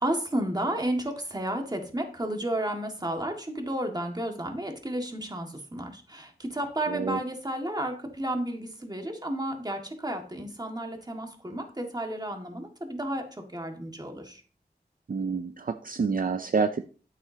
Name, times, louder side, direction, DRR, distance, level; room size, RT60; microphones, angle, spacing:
voice 1, 0.0-14.4, right 1 dB, 25° right, 3 dB, 1.8 m, -32 dB
voice 2, 6.9-7.2 15.1-16.8, right 5 dB, 55° right, 9 dB, 0.5 m, -28 dB
9.9 x 8.6 x 2.8 m, 0.38 s
wide cardioid pair, 65°, 17 cm